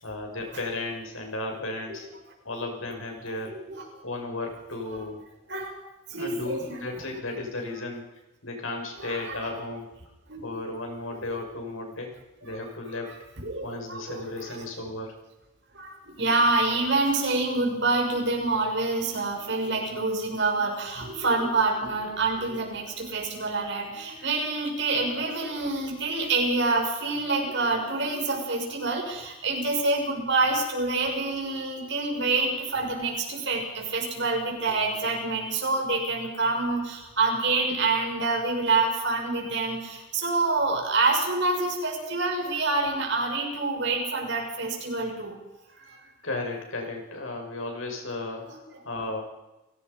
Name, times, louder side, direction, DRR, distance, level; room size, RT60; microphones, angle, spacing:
voice 1, 0.0-2.1 2.4-3.6 4.0-5.2 6.1-8.0 8.4-9.9 10.4-12.1 12.4-13.2 13.6-15.1 46.2-49.2, left 2 dB, 80° left, 2 dB, 6.7 m, -34 dB
voice 2, 3.2-3.9 4.7-5.0 5.5-5.7 6.1-6.8 7.7-7.8 8.9-9.6 10.3-10.5 11.1-11.4 12.4-14.6 15.7-45.4 45.8-46.0 48.5-48.6, right 3 dB, 60° right, 1 dB, 6.9 m, -27 dB
29.5 x 18.0 x 5.6 m, 1.0 s
head